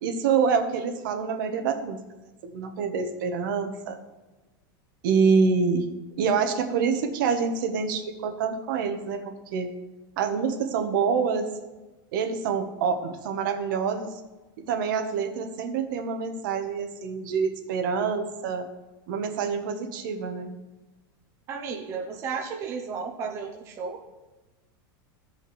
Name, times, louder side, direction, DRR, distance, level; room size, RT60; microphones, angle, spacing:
voice 1, 0.0-2.0 2.5-4.0 5.0-5.9 6.2-9.7 10.2-11.5 12.1-14.2 14.7-18.7 19.1-20.5, right 5 dB, 60° right, 6 dB, 1.1 m, -26 dB
voice 2, 21.5-24.0, right 5 dB, 20° right, 2 dB, 0.7 m, -33 dB
16.0 x 5.5 x 3.2 m, 1.1 s
supercardioid pair, 175°, 12 cm